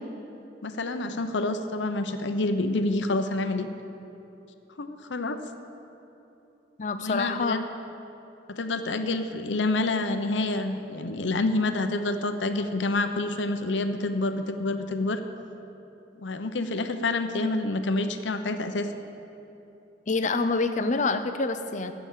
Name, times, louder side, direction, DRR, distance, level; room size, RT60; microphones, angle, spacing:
voice 1, 0.6-3.7 4.8-5.4 7.0-7.7 8.5-15.2 16.2-18.9, left 2 dB, 75° left, 8 dB, 0.7 m, -28 dB
voice 2, 6.8-7.6 20.1-21.9, left 3 dB, 40° left, 9 dB, 0.6 m, -26 dB
15.0 x 6.0 x 7.5 m, 2.9 s
head